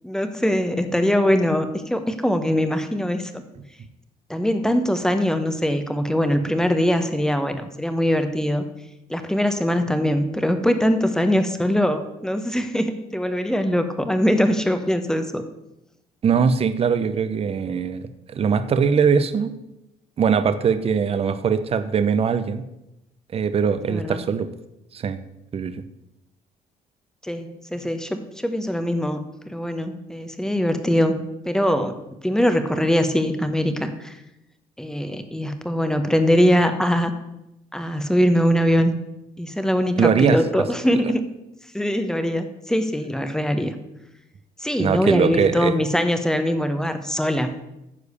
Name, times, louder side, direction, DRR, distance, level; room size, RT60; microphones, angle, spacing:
voice 1, 0.0-3.4 4.3-8.6 9.1-15.4 23.9-24.2 27.2-31.2 31.4-31.9 32.2-34.1 34.8-37.1 37.7-39.0 39.4-41.2 41.7-43.7 44.6-47.5, equal, 5° left, 8 dB, 1.0 m, -22 dB
voice 2, 16.2-19.5 20.2-22.6 23.3-24.5 24.9-25.2 25.5-25.8 40.0-40.4 44.8-45.7, right 6 dB, 40° right, 12 dB, 0.7 m, -21 dB
9.8 x 4.7 x 6.8 m, 0.89 s
cardioid pair, 95°, 15 cm